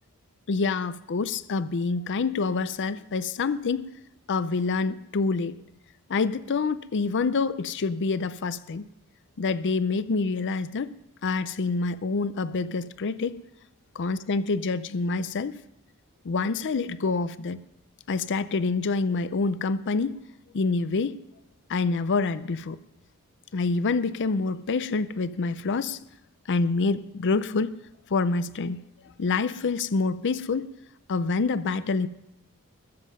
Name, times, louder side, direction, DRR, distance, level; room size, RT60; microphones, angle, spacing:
voice 1, 0.5-3.9 4.3-5.6 6.1-8.9 9.4-10.9 11.2-13.4 14.0-15.6 16.2-17.6 18.1-20.2 20.5-21.2 21.7-22.8 23.5-26.0 26.5-27.8 28.1-28.8 29.2-30.7 31.1-32.1, left 4 dB, 55° left, 14 dB, 0.5 m, -27 dB
21.0 x 7.6 x 5.4 m, 0.92 s
head